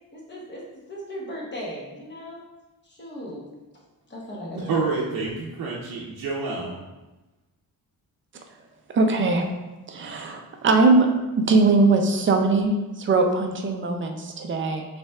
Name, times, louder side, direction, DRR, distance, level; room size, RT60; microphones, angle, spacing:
voice 1, 0.1-2.4 2.8-3.4 4.1-4.9, equal, 30° left, -3 dB, 0.9 m, -37 dB
voice 2, 4.5-6.8, right 4 dB, 85° right, -4 dB, 0.7 m, -28 dB
voice 3, 8.9-9.5 9.9-11.1 11.5-14.9, right 3 dB, 35° right, 4 dB, 0.4 m, -20 dB
5.6 x 3.4 x 2.3 m, 1.1 s
wide cardioid pair, 175°, 36 cm